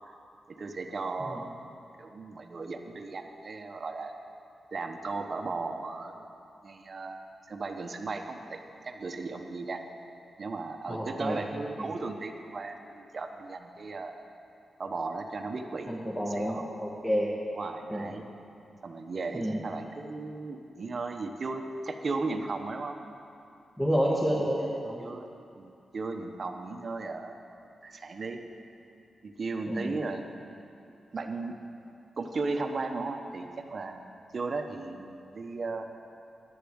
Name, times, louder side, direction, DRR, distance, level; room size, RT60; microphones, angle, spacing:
voice 1, 0.5-1.6 2.0-4.1 4.7-6.2 6.6-9.8 10.4-14.1 14.8-16.6 17.5-18.3 18.8-23.0 24.1-24.5 25.0-25.3 25.6-27.4 27.8-28.4 29.2-30.4 31.1-31.6 32.2-35.9, right 3 dB, 50° right, 5 dB, 0.9 m, -36 dB
voice 2, 10.9-11.4 15.9-17.3 17.9-18.0 19.3-19.6 23.8-25.0 29.7-29.9, equal, 10° left, -5 dB, 1.6 m, -29 dB
10.5 x 6.8 x 7.9 m, 2.6 s
cardioid pair, 75°, 0 cm